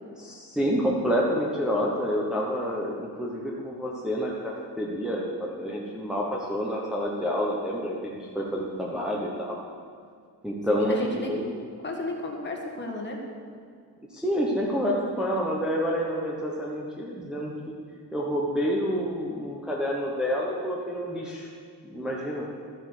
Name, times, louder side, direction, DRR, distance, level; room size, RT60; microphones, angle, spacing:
voice 1, 0.2-9.6 10.4-11.5 14.1-17.5 18.1-21.5 21.8-22.5, equal, ahead, -4 dB, 1.0 m, -28 dB
voice 2, 10.7-13.2, left 2 dB, 25° left, 1 dB, 1.6 m, -34 dB
13.0 x 7.7 x 6.6 m, 2.1 s
cardioid pair, 175°, 42 cm